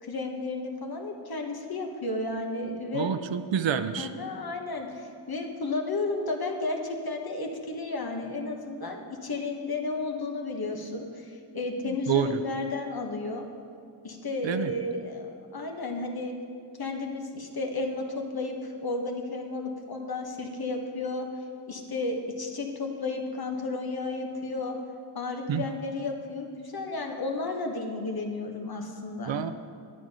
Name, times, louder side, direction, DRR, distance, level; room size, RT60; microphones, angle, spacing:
voice 1, 0.0-3.1 4.0-13.5 14.0-16.3 16.8-21.3 21.7-24.8 25.1-29.3, left 3 dB, 55° left, 3 dB, 1.4 m, -33 dB
voice 2, 2.9-4.1 11.8-12.4 14.4-14.7 25.5-25.6 29.3-29.5, right 9 dB, 80° right, 10 dB, 0.6 m, -28 dB
9.9 x 9.3 x 5.5 m, 2.4 s
wide cardioid pair, 65°, 44 cm